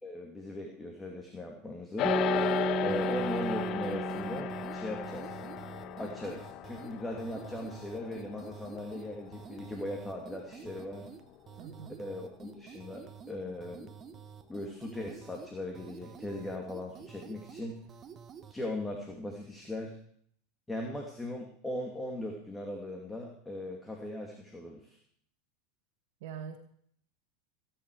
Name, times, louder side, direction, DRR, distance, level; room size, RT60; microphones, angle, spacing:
voice 1, 0.0-2.2 2.8-5.4 6.0-11.1 12.0-13.9 14.5-17.8 18.5-19.9 20.7-25.0, left 1 dB, 10° left, 1 dB, 2.8 m, -39 dB
sound 1, 2.0-11.5, left 13 dB, 45° left, 0.7 m, -36 dB
sound 2, 2.0-6.3, right 4 dB, 10° right, 1.5 m, -34 dB
sound 3, 2.4-18.6, right 7 dB, 35° right, 1.3 m, -50 dB
voice 2, 11.6-12.0 26.2-26.6, right 7 dB, 65° right, 5 dB, 1.7 m, -43 dB
18.0 x 10.0 x 4.9 m, 0.63 s
hypercardioid pair, 95°, 0 cm